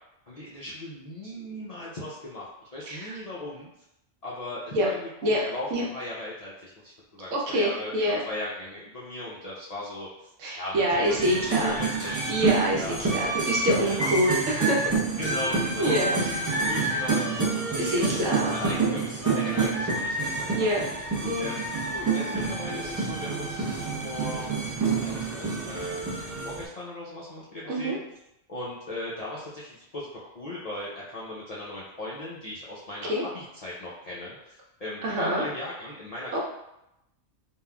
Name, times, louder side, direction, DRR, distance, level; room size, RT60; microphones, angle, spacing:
voice 1, 0.3-3.7 4.2-7.9 8.3-12.5 12.8-13.0 13.8-14.1 15.2-20.7 21.4-24.5 24.8-28.0 28.5-30.1 30.3-33.1 33.3-36.4, left 1 dB, 60° left, -7 dB, 0.4 m, -38 dB
voice 2, 7.3-8.2 10.4-11.8 12.3-12.8 13.1-14.8 15.8-16.4 17.7-18.5 20.5-20.8 21.2-21.5 27.6-28.0 33.1-33.2 35.0-35.4 36.3-36.4, equal, 80° right, -3 dB, 1.1 m, -26 dB
sound 1, 11.0-26.6, right 4 dB, 25° right, 0.4 m, -28 dB
3.5 x 2.3 x 2.2 m, 0.86 s
omnidirectional pair, 1.2 m